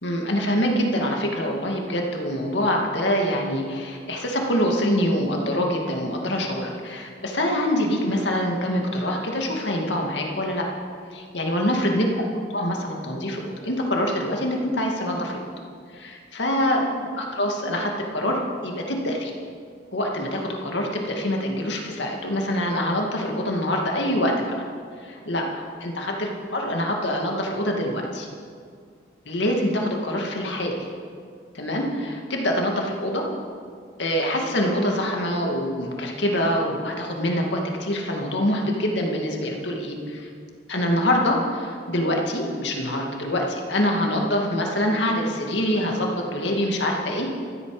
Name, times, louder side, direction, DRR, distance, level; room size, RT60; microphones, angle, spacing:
voice 1, 0.0-10.7 11.1-12.2 12.5-15.4 15.9-19.3 19.9-24.5 25.0-28.3 29.3-30.9 31.5-33.2 34.0-40.3 40.7-47.3, equal, 70° left, 0 dB, 2.2 m, -25 dB
14.0 x 13.5 x 5.0 m, 2.2 s
head